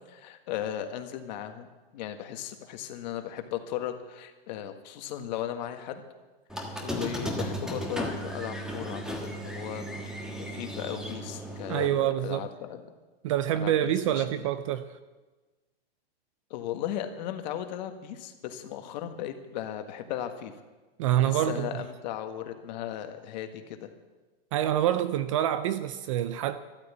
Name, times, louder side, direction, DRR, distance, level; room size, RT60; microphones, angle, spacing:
voice 1, 0.1-1.7 1.9-6.0 6.5-9.8 10.4-12.9 13.6-14.5 16.5-20.5 21.2-23.9, left 11 dB, 45° left, 1.6 m, -36 dB
Squeak, 6.5-11.9, equal, ahead, 1.5 m, -35 dB
voice 2, 11.7-12.5 13.2-15.0 21.0-21.8 24.5-26.6, right 11 dB, 30° right, 0.5 m, -26 dB
14.0 x 11.5 x 8.4 m
supercardioid pair, 160°, 31 cm